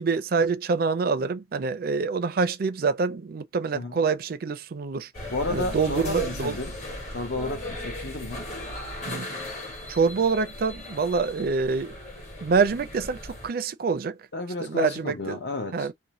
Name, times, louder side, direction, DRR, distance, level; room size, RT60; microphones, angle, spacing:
voice 1, 0.0-5.1 5.5-6.6 9.1-9.3 9.9-12.0 12.4-14.2 14.6-15.4 15.7-15.9, right 4 dB, 55° right, 0.4 m, -26 dB
sound 1, 5.1-13.5, left 1 dB, 40° left, 1.1 m, -37 dB
voice 2, 5.3-6.7 7.1-8.5 14.3-15.9, left 2 dB, 65° left, 0.8 m, -32 dB
2.7 x 2.1 x 2.9 m
head